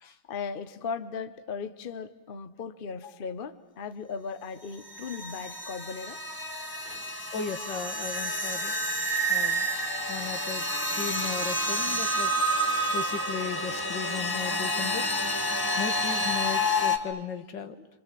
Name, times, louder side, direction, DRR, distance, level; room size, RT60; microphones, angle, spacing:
voice 1, 0.3-6.2 6.8-7.2, left 5 dB, 35° left, 1.0 m, -37 dB
sound 1, 4.9-17.0, equal, 10° left, 1.8 m, -29 dB
voice 2, 7.3-8.8 9.3-9.7 10.1-10.6 10.9-12.4 12.9-15.2 15.8-17.9, left 7 dB, 75° left, 2.0 m, -36 dB
29.0 x 26.5 x 7.6 m
omnidirectional pair, 2.0 m